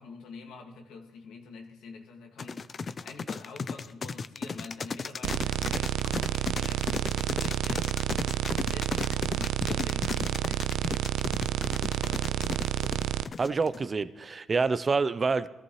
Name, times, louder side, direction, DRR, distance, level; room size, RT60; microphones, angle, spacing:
voice 1, 0.0-2.7 3.0-8.0 8.3-13.0, left 4 dB, 80° left, 3 dB, 2.1 m, -48 dB
sound 1, 2.4-13.9, left 5 dB, 40° left, 0.5 m, -34 dB
sound 2, 5.2-13.2, right 12 dB, 85° right, 0.4 m, -30 dB
voice 2, 13.4-15.5, right 4 dB, 35° right, 14 dB, 0.6 m, -27 dB
21.5 x 14.0 x 3.2 m, 1.2 s
cardioid pair, 90°, 0 cm